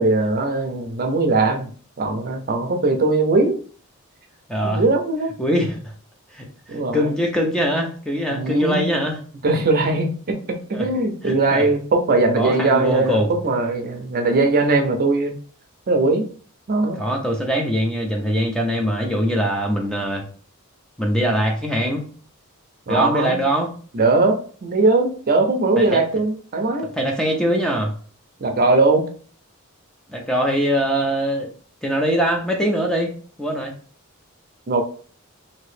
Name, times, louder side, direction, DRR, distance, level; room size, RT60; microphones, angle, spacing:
voice 1, 0.0-1.7 2.0-3.6 4.6-5.3 6.7-7.1 8.3-8.8 9.4-15.3 15.9-16.3 16.7-17.0 22.9-23.4 23.9-26.9 28.4-29.0 34.7-34.8, right 3 dB, 45° right, 5 dB, 0.5 m, -20 dB
voice 2, 4.5-4.8 5.4-5.9 6.3-6.5 6.9-9.2 10.7-10.9 11.2-11.6 12.4-13.3 17.0-20.2 21.0-22.1 22.9-23.7 25.8-26.0 26.9-27.9 30.1-31.5 31.8-33.7, equal, 5° left, 1 dB, 0.4 m, -22 dB
2.9 x 2.7 x 3.2 m, 0.43 s
head